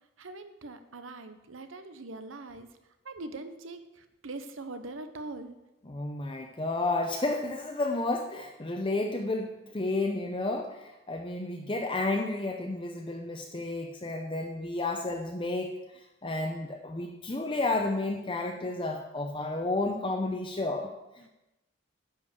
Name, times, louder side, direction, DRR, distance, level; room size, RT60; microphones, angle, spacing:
voice 1, 0.2-2.7 3.0-5.6, right 2 dB, 90° right, 9 dB, 0.9 m, -42 dB
voice 2, 5.8-21.3, left 2 dB, 25° left, 2 dB, 0.7 m, -32 dB
10.0 x 5.1 x 6.9 m, 0.96 s
head